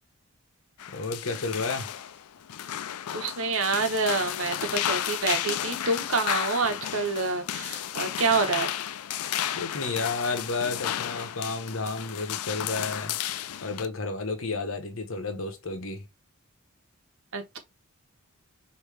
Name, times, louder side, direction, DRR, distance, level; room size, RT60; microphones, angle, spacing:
sound 1, 0.8-13.9, left 11 dB, 85° left, 0.4 m, -33 dB
voice 1, 0.9-1.9 9.5-13.1 13.6-16.0, left 3 dB, 65° left, 1.1 m, -31 dB
voice 2, 3.1-8.7 17.3-17.6, right 3 dB, 65° right, 1.1 m, -27 dB
5.4 x 2.8 x 3.4 m
head